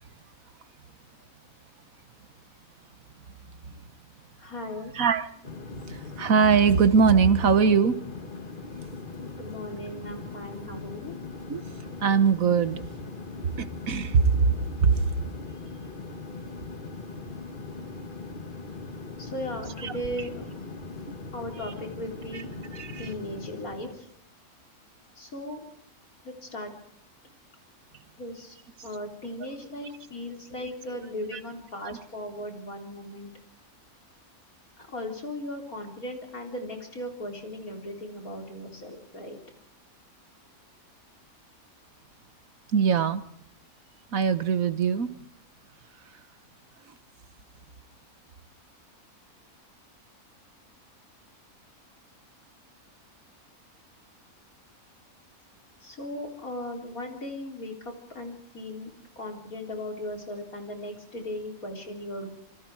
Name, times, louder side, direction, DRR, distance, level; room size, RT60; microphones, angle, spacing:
voice 1, 4.4-4.9 9.2-11.1 19.2-20.7 21.3-22.5 23.0-24.1 25.2-25.6 26.2-26.7 28.2-28.6 28.8-33.3 34.8-39.4 55.8-62.3, left 1 dB, 70° left, 3 dB, 4.4 m, -37 dB
voice 2, 4.9-5.3 5.9-8.0 11.5-11.6 12.0-12.8 13.6-14.3 14.8-15.0 19.8-19.9 22.7-23.1 31.3-31.4 31.8-32.0 42.7-43.2 44.1-45.1, right 6 dB, 65° right, 13 dB, 1.5 m, -22 dB
sound 1, 5.4-24.0, left 3 dB, 35° left, 1.7 m, -40 dB
26.5 x 25.5 x 4.8 m, 0.66 s
omnidirectional pair, 1.6 m